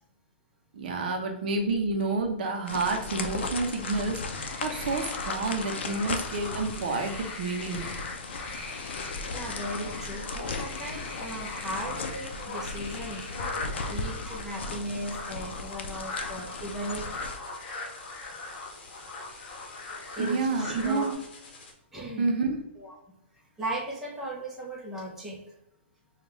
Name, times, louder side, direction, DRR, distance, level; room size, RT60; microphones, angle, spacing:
voice 1, 0.7-7.9 20.2-21.1 22.2-22.6, right 3 dB, 50° right, 3 dB, 0.7 m, -29 dB
sound 1, 2.7-17.4, left 4 dB, 70° left, 0.5 m, -37 dB
sound 2, 3.6-21.7, left 3 dB, 50° left, 1.1 m, -49 dB
sound 3, 4.3-21.1, left 3 dB, 30° left, 0.9 m, -40 dB
voice 2, 9.3-13.3 13.9-17.1 20.1-21.1 21.9-22.3 22.8-23.0 23.6-25.4, right 1 dB, 5° right, -6 dB, 0.8 m, -37 dB
5.3 x 2.4 x 3.0 m, 0.87 s
hypercardioid pair, 170°, 6 cm